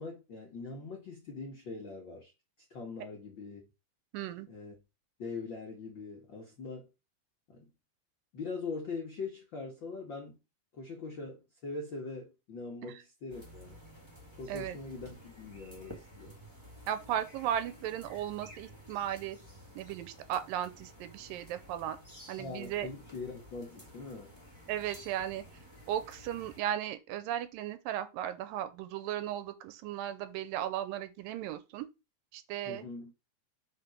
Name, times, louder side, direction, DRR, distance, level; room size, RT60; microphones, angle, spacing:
voice 1, 0.0-2.3 2.7-3.6 4.5-4.8 5.2-6.9 7.5-7.7 8.3-10.4 10.7-13.8 14.4-16.3 22.4-24.3 32.6-33.1, left 4 dB, 70° left, 1.1 m, -42 dB
voice 2, 4.1-4.5 12.8-13.0 14.5-14.8 16.9-19.4 19.8-22.0 22.3-22.9 24.7-25.4 25.9-31.9 32.3-32.8, right 11 dB, 80° right, 2.3 m, -36 dB
sound 1, 13.3-26.6, equal, 15° right, 0.9 m, -53 dB
5.2 x 4.0 x 5.8 m
omnidirectional pair, 4.1 m